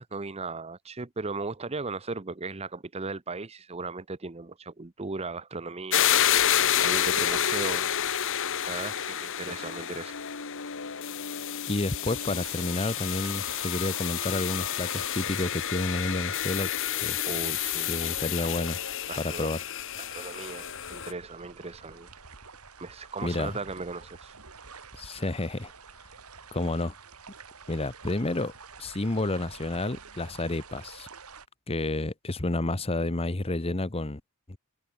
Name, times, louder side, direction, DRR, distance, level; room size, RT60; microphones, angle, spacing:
voice 1, 0.0-6.1 6.8-7.9 8.3-8.4 8.7-10.2 17.2-18.0 18.4-18.6 19.1-19.5 20.0-22.1 22.8-24.3, right 3 dB, 30° right, 0.9 m, -37 dB
sound 1, 5.9-21.1, left 10 dB, 60° left, 1.3 m, -29 dB
voice 2, 11.7-16.7 17.0-17.2 17.9-18.8 19.2-19.6 23.2-23.5 25.0-25.7 26.5-26.9 27.7-28.5 28.8-31.1 31.7-34.2 34.5-34.6, left 2 dB, 25° left, 1.1 m, -30 dB
sound 2, 12.0-31.5, right 5 dB, 80° right, 3.7 m, -48 dB
head